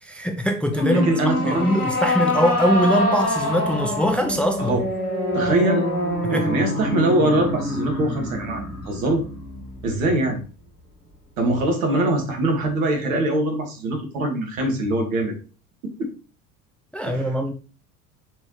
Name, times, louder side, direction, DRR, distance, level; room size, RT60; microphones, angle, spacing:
voice 1, 0.0-4.8 6.3-6.5 16.9-17.5, equal, 5° left, 0.7 m, -22 dB
sound 1, 0.7-10.1, left 1 dB, 75° left, 2.6 m, -25 dB
voice 2, 0.9-1.6 4.6-4.8 5.3-5.9 6.3-9.2 9.8-10.4 11.4-15.3 15.8-16.1 17.0-17.3, right 1 dB, 65° right, 2.4 m, -23 dB
6.9 x 5.1 x 3.4 m
figure-of-eight pair, 65°, 44 cm